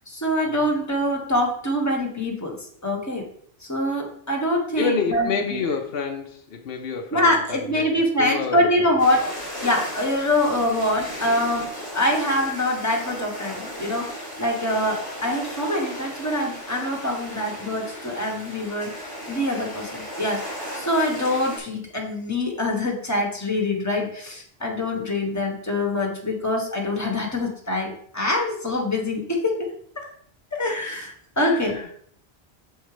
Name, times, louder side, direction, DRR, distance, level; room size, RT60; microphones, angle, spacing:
voice 1, 0.1-2.6 2.8-3.2 3.6-5.6 7.1-11.7 11.9-29.5 29.9-30.0 30.5-31.8, left 1 dB, 15° left, 0 dB, 1.4 m, -24 dB
voice 2, 4.8-8.9 31.4-32.0, left 5 dB, 70° left, 2 dB, 0.9 m, -29 dB
sound 1, 9.0-21.6, equal, 20° right, 2.2 m, -36 dB
6.3 x 4.5 x 5.0 m, 0.64 s
omnidirectional pair, 1.1 m